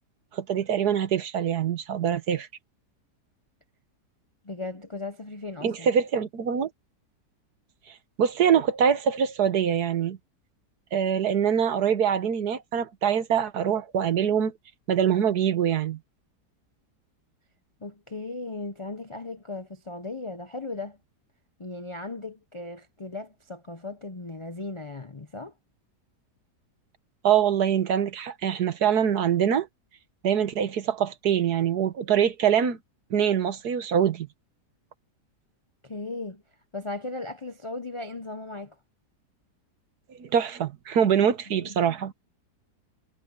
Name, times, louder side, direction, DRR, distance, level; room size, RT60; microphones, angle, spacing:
voice 1, 0.3-2.5 5.6-6.7 8.2-10.2 10.9-14.5 14.9-16.0 27.2-29.7 30.2-32.8 33.1-34.3 40.2-42.1, right 8 dB, 65° right, 1.6 m, -24 dB
voice 2, 4.4-5.9 17.8-21.0 21.6-25.5 35.8-36.4 36.7-38.8 41.7-41.8, left 2 dB, 35° left, 0.5 m, -37 dB
omnidirectional pair, 1.8 m